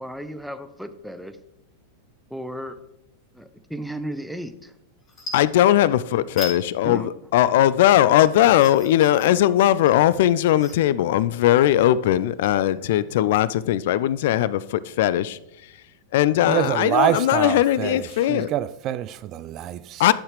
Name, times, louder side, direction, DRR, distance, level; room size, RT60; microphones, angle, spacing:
voice 1, 0.0-1.4 2.3-2.8 3.3-4.7 6.8-7.1, right 1 dB, ahead, 0.7 m, -34 dB
sound 1, 4.5-4.7 5.0-6.0 6.3-6.6 7.0-13.5, left 3 dB, 25° left, 3.6 m, -40 dB
voice 2, 5.3-15.4 16.1-18.5 20.0-20.1, left 12 dB, 55° left, 0.4 m, -19 dB
voice 3, 16.5-18.0 18.3-20.0, right 12 dB, 35° right, 0.3 m, -25 dB
11.5 x 7.1 x 3.3 m
figure-of-eight pair, 90°, 0 cm